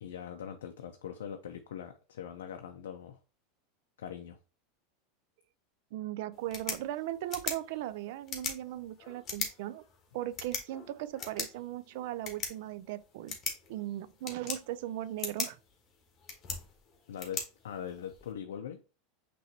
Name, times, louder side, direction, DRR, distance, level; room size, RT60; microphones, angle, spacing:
voice 1, 0.0-3.2 4.0-4.4 17.1-18.8, left 8 dB, 90° left, 0.4 m, -42 dB
voice 2, 5.9-9.8 10.1-13.4 13.7-15.6, right 14 dB, 70° right, 0.3 m, -38 dB
sound 1, 6.3-18.3, left 5 dB, 35° left, 1.3 m, -41 dB
5.7 x 3.0 x 2.8 m
supercardioid pair, 115°, 0 cm